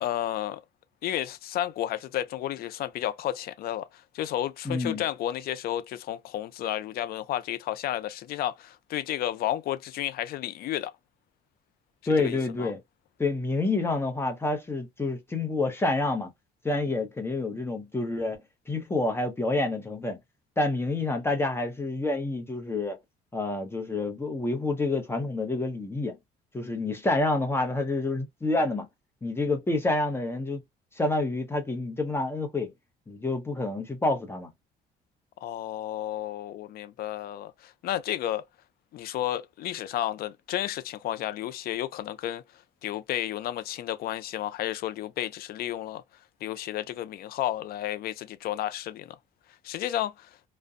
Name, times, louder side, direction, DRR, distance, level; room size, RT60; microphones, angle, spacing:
voice 1, 0.0-0.6 1.0-3.9 4.1-10.9 12.2-12.7 35.4-38.4 38.9-42.4 42.8-46.0 46.4-49.2 49.6-50.3, left 12 dB, 65° left, 0.4 m, -32 dB
voice 2, 4.6-5.0 12.1-12.8 13.2-16.3 16.6-18.4 18.7-20.2 20.6-23.0 23.3-26.2 26.5-28.9 29.2-30.6 31.0-32.7 33.1-34.5, left 2 dB, 15° left, 0.7 m, -28 dB
2.5 x 2.1 x 2.4 m
cardioid pair, 110°, 17 cm